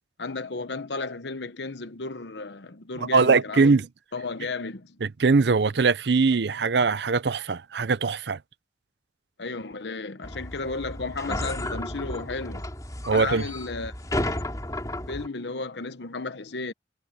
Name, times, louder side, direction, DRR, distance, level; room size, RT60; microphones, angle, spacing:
voice 1, 0.2-3.8 4.1-5.0 9.4-12.7 13.1-14.4 15.1-16.7, left 3 dB, 80° left, 1.1 m, -34 dB
voice 2, 3.0-3.9 5.0-8.4 13.1-13.4, right 4 dB, 75° right, 0.6 m, -21 dB
sound 1, 10.2-15.3, left 1 dB, 20° left, 3.3 m, -32 dB
head